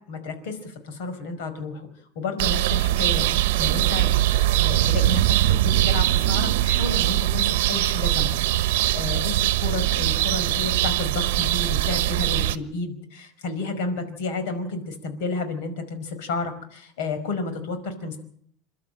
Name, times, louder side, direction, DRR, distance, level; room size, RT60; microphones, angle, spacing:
voice 1, 0.1-1.9 2.1-4.1 4.5-18.2, left 3 dB, 70° left, 9 dB, 5.0 m, -31 dB
sound 1, 2.4-12.6, right 14 dB, 75° right, 1.0 m, -22 dB
28.5 x 12.0 x 8.8 m, 0.65 s
supercardioid pair, 170°, 0 cm